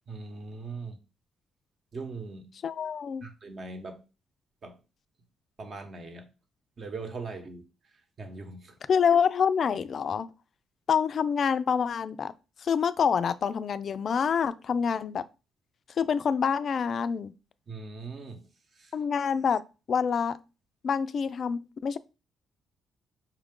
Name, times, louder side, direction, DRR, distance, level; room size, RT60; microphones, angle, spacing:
voice 1, 0.1-1.0 1.9-2.5 3.2-4.0 4.6-4.8 5.6-6.3 6.8-7.6 8.2-8.7 17.7-18.4 18.8-18.9, right 3 dB, 45° right, 0.9 m, -40 dB
voice 2, 2.6-3.2 8.9-10.3 10.9-12.3 12.6-15.2 16.0-17.3 18.9-19.6 19.9-20.4 20.8-22.0, left 7 dB, 50° left, 0.3 m, -26 dB
5.7 x 2.4 x 3.6 m
cardioid pair, 90°, 0 cm